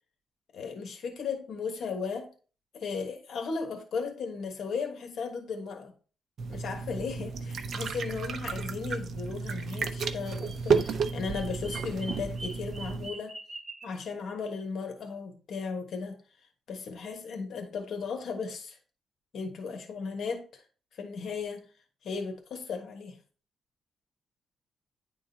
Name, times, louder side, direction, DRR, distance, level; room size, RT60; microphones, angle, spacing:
voice 1, 0.5-2.3 2.7-5.9 6.5-13.4 13.8-16.2 16.7-18.8 19.3-20.6 21.0-21.7 22.0-23.2, left 5 dB, 65° left, 1.3 m, -36 dB
sound 1, 6.4-13.1, right 5 dB, 60° right, 0.6 m, -32 dB
Bird vocalization bird call bird song, 10.1-14.0, right 2 dB, 20° right, 1.1 m, -44 dB
10.0 x 3.8 x 2.7 m
cardioid pair, 125°, 0 cm